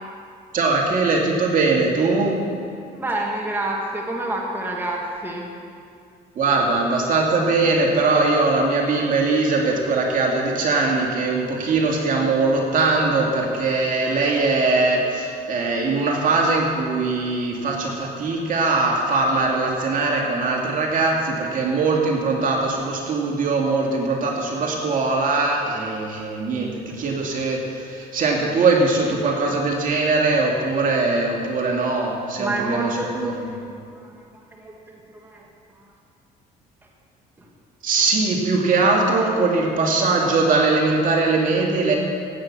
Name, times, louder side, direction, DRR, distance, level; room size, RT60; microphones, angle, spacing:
voice 1, 0.5-2.4 6.4-33.5 37.8-41.9, right 3 dB, 50° right, -1 dB, 2.5 m, -21 dB
voice 2, 2.9-5.4 32.4-33.7 33.9-35.5 35.7-35.9 37.4-37.5, right 2 dB, 10° right, -2 dB, 2.1 m, -29 dB
16.5 x 8.8 x 6.2 m, 2.4 s
cardioid pair, 110°, 17 cm